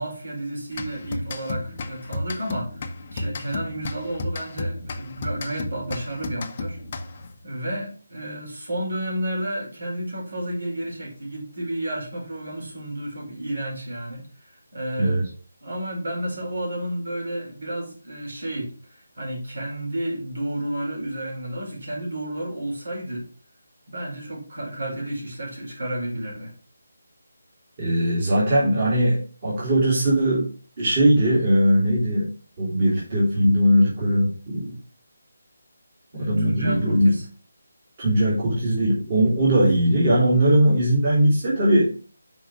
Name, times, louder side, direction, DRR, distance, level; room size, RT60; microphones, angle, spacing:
voice 1, 0.0-6.8 7.4-15.2 15.6-23.3 23.9-26.5 36.1-37.2, right 1 dB, 70° right, -1 dB, 4.5 m, -31 dB
sound 1, 0.7-7.4, left 2 dB, 30° left, 0.7 m, -33 dB
voice 2, 15.0-15.3 27.8-30.5 30.8-32.3 32.6-34.8 36.1-37.1 38.0-41.9, right 1 dB, 30° right, -6 dB, 3.1 m, -20 dB
6.2 x 4.8 x 5.8 m, 0.37 s
figure-of-eight pair, 170°, 0 cm